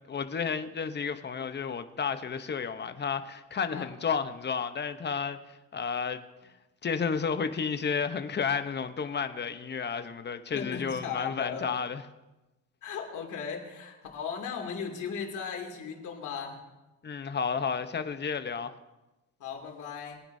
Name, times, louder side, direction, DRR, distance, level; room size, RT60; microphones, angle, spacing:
voice 1, 0.1-5.4 5.7-6.5 6.8-12.0 17.0-18.7, left 6 dB, 35° left, 0.9 m, -32 dB
voice 2, 10.5-11.7 12.8-16.6 19.4-20.2, left 6 dB, 80° left, 2.7 m, -37 dB
21.5 x 9.8 x 2.7 m
cardioid pair, 90°, 30 cm